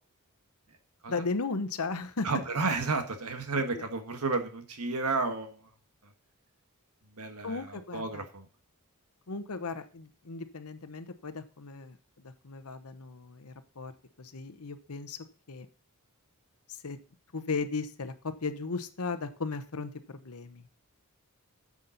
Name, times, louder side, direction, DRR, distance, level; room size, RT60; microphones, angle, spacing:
voice 1, 1.1-2.3 7.4-8.2 9.3-13.9 14.2-15.2 15.5-15.7 16.7-17.0 17.3-20.7, left 4 dB, 75° left, 10 dB, 1.0 m, -36 dB
voice 2, 2.2-5.7 6.0-6.1 7.1-8.5, right 3 dB, 85° right, 6 dB, 1.5 m, -32 dB
10.0 x 7.2 x 4.0 m, 0.38 s
head